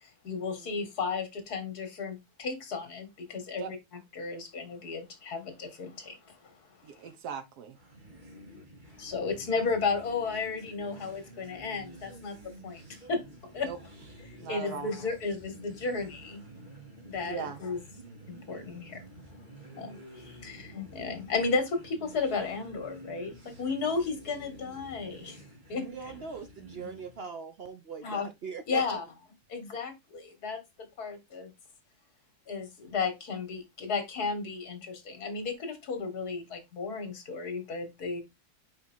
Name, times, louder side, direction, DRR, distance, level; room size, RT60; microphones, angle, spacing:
voice 1, 0.2-3.8 4.1-6.2 6.4-6.5 9.0-12.4 12.6-12.8 13.1-13.2 13.5-13.7 14.5-16.4 17.0-17.8 18.3-19.0 19.8-25.4 25.7-25.9 28.0-28.3 28.7-29.0 29.5-30.6 31.0-31.5 32.5-38.2, left 4 dB, 75° left, 2.2 m, -33 dB
voice 2, 6.8-7.8 13.7-13.8 14.4-14.9 17.2-17.6 20.5-20.8, right 7 dB, 80° right, 1.6 m, -39 dB
sound 1, 7.7-27.2, right 1 dB, 30° right, 2.4 m, -50 dB
voice 3, 25.8-28.8, right 6 dB, 55° right, 0.7 m, -41 dB
5.2 x 4.6 x 4.4 m
omnidirectional pair, 1.7 m